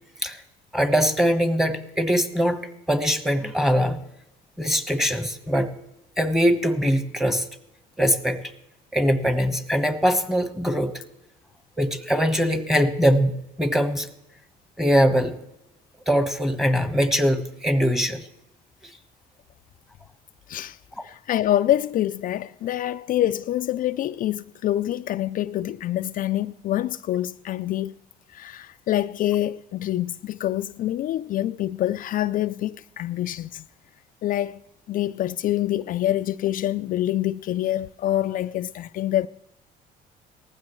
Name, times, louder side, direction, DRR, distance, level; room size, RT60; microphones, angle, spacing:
voice 1, 0.7-2.6 2.9-4.0 4.6-5.7 6.2-7.5 8.0-8.4 8.9-10.9 11.8-14.1 14.8-15.3 16.1-18.3, equal, ahead, 1.3 m, -22 dB
voice 2, 20.5-20.8 21.0-28.0 28.3-33.7 34.2-34.6 34.9-39.3, left 13 dB, 55° left, 0.4 m, -26 dB
19.0 x 15.0 x 3.1 m
cardioid pair, 110°, 17 cm